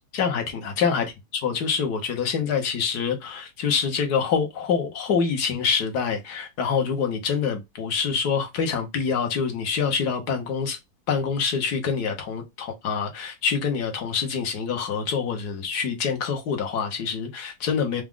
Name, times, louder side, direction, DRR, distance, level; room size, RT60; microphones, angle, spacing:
voice 1, 0.1-1.1 1.3-10.8 11.1-18.0, left 6 dB, 60° left, 1.5 m, -26 dB
4.8 x 2.4 x 3.6 m
omnidirectional pair, 2.1 m